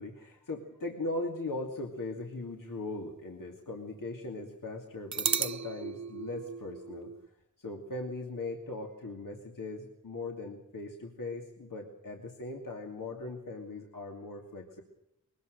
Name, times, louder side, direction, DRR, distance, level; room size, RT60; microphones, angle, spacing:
voice 1, 0.0-7.1 7.6-14.8, left 2 dB, 70° left, 1 dB, 2.8 m, -39 dB
sound 1, 1.8-3.5 3.7-3.8 5.1-7.3, right 6 dB, 55° right, 0.8 m, -35 dB
22.0 x 20.0 x 6.7 m, 0.84 s
wide cardioid pair, 90°, 33 cm